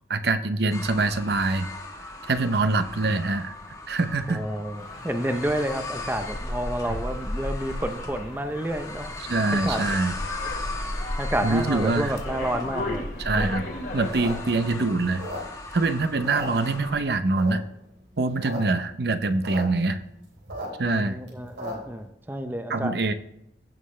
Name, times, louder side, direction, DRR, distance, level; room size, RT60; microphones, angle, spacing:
voice 1, 0.1-1.7 2.3-3.5 3.9-4.4 9.3-10.1 11.4-12.1 13.2-13.6 13.9-15.2 15.7-17.6 18.2-20.0 20.8-21.2 22.7-23.1, right 3 dB, 60° right, 9 dB, 0.7 m, -24 dB
sound 1, 0.7-17.0, left 2 dB, 20° left, 1.2 m, -38 dB
voice 2, 4.3-9.1 9.6-9.8 11.2-13.5 16.5-16.6 20.8-22.9, right 1 dB, 10° right, 7 dB, 0.6 m, -30 dB
sound 2, 4.8-14.8, left 1 dB, 60° left, 2.4 m, -35 dB
sound 3, 14.1-15.8 16.1-17.0 17.4-17.8 18.2-18.6 18.9-19.0 19.1-19.6 20.0-22.0, equal, 90° right, 3.6 m, -35 dB
16.0 x 5.6 x 3.2 m, 0.77 s
head